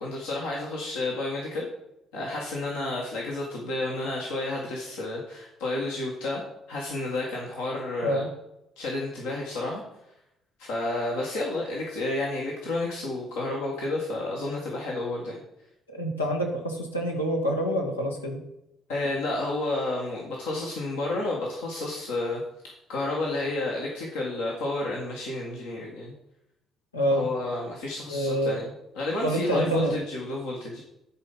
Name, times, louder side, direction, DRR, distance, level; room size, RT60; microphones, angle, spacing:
voice 1, 0.0-1.7 2.1-6.4 6.7-8.3 8.8-9.8 10.6-15.4 18.9-22.4 22.9-26.1 27.1-30.8, left 2 dB, 70° left, -3 dB, 1.5 m, -31 dB
voice 2, 15.9-18.4 26.9-27.2 28.1-28.6 29.2-29.9, equal, 85° left, 0 dB, 1.1 m, -27 dB
10.5 x 4.4 x 5.4 m, 0.83 s
figure-of-eight pair, 45°, 0 cm